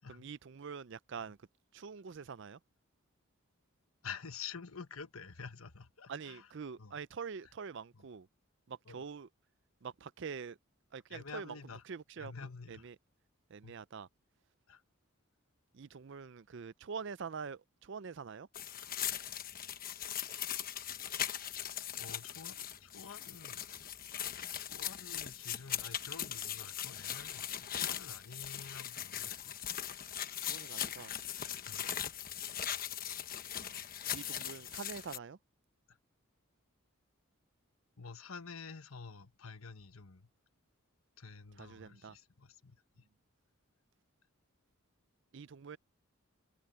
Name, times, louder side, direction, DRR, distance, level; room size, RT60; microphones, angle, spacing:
voice 1, 0.1-1.4 1.7-2.6 6.1-8.3 8.7-9.3 9.8-10.6 10.9-11.6 11.9-12.3 12.7-12.9 13.5-14.1 15.7-18.5 30.5-31.1 34.1-35.4 41.6-42.2 45.3-45.8, right 6 dB, 55° right, 0.5 m, -45 dB
voice 2, 4.0-6.5 6.8-7.0 7.9-8.1 8.9-9.1 11.1-11.8 12.2-12.9 13.6-13.7 14.7-14.8 22.0-23.7 24.5-29.8 31.7-31.9 35.9-36.0 38.0-40.3 41.2-43.1, left 5 dB, 75° left, 1.3 m, -49 dB
sound 1, 18.5-35.2, left 10 dB, 40° left, 1.2 m, -40 dB
head